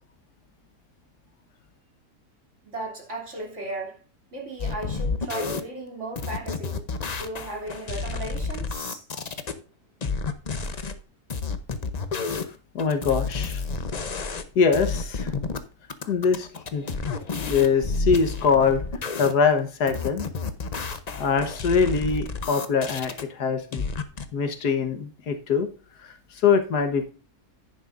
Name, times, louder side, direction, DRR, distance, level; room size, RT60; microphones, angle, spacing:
voice 1, 2.6-4.0 4.3-6.8 7.2-9.0, right 2 dB, 45° right, 3.2 m, -36 dB
sound 1, 4.6-5.6 6.2-9.5 10.0-10.9 11.3-12.5 12.8-14.5 14.7-15.6 15.9-19.3 19.9-23.2 23.7-24.3, left 4 dB, 40° left, 0.6 m, -30 dB
voice 2, 12.8-13.6 14.6-15.3 16.1-16.8 17.5-18.8 19.2-20.3 21.2-23.8 24.3-25.7 26.4-27.1, left 5 dB, 80° left, 1.8 m, -23 dB
10.5 x 9.7 x 2.6 m
omnidirectional pair, 1.7 m